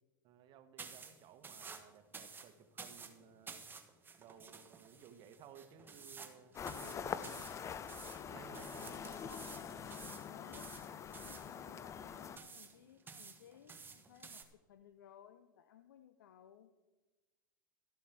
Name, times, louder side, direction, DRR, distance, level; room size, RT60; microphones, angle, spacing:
voice 1, 0.2-3.6 4.2-7.5 8.2-9.4 9.7-10.0, right 8 dB, 45° right, 10 dB, 1.2 m, -58 dB
sound 1, 0.8-14.4, right 5 dB, 20° right, 1.3 m, -53 dB
sound 2, 6.5-12.4, left 7 dB, 25° left, 0.6 m, -45 dB
voice 2, 8.7-9.3 10.3-10.8 11.1-16.7, left 10 dB, 75° left, 9 dB, 0.6 m, -60 dB
13.0 x 7.2 x 6.0 m, 1.2 s
hypercardioid pair, 95°, 11 cm